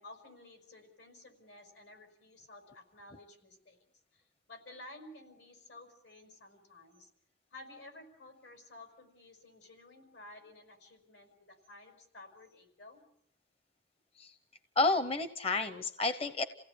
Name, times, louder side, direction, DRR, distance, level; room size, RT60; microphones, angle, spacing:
voice 1, 0.0-3.8 4.1-4.2 4.5-7.1 7.5-13.0, left 2 dB, 80° left, 4 dB, 5.5 m, -53 dB
voice 2, 14.8-16.4, left 3 dB, 35° left, 10 dB, 0.8 m, -30 dB
28.5 x 17.0 x 8.5 m, 0.77 s
head